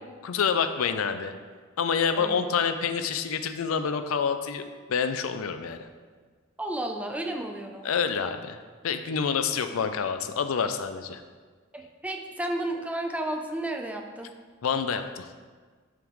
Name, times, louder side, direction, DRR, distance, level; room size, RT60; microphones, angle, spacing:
voice 1, 0.2-1.3 1.8-5.9 7.8-11.2 14.6-15.3, left 6 dB, 85° left, 9 dB, 0.4 m, -27 dB
voice 2, 2.2-2.5 6.6-7.9 11.7-14.3, right 1 dB, 5° right, 2 dB, 0.5 m, -32 dB
10.5 x 3.6 x 3.1 m, 1.5 s
head